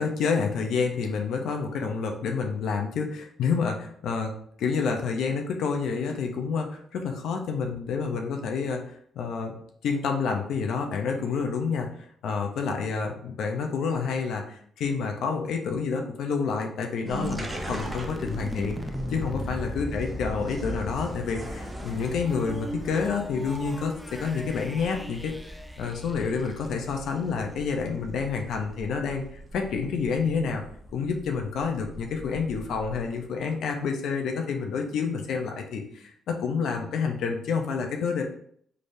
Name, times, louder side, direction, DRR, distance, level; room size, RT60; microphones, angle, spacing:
voice 1, 0.0-8.8 9.2-9.5 9.8-11.9 12.2-18.8 19.1-25.4 25.8-30.6 30.9-38.2, left 5 dB, 75° left, 3 dB, 0.6 m, -28 dB
sound 1, 17.0-33.2, equal, 25° right, 0.9 m, -40 dB
sound 2, 17.2-27.1, equal, ahead, 0.3 m, -39 dB
3.8 x 3.3 x 2.6 m, 0.63 s
cardioid pair, 90°, 0 cm